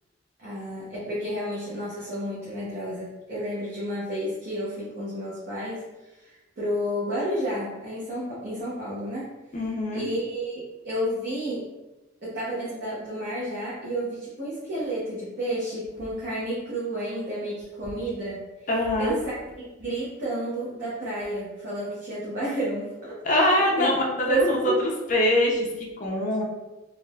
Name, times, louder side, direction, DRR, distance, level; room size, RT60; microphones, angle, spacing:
voice 1, 0.4-5.8 6.1-6.3 6.6-9.3 9.9-11.7 12.2-18.4 19.0-23.1 23.8-24.0 24.2-24.8, right 1 dB, 55° right, -9 dB, 0.8 m, -31 dB
voice 2, 9.5-10.1 18.7-19.1 23.2-24.4 24.6-26.4, left 1 dB, 45° left, -1 dB, 0.6 m, -23 dB
3.4 x 2.5 x 2.3 m, 1.1 s
head